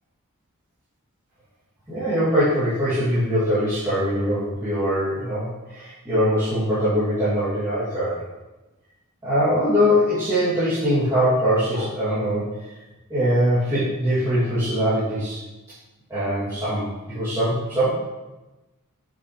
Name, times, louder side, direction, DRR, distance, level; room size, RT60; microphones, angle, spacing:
voice 1, 1.9-8.2 9.2-12.5 13.1-15.4 16.1-17.9, equal, 15° right, -15 dB, 2.5 m, -22 dB
6.9 x 6.6 x 3.2 m, 1.1 s
head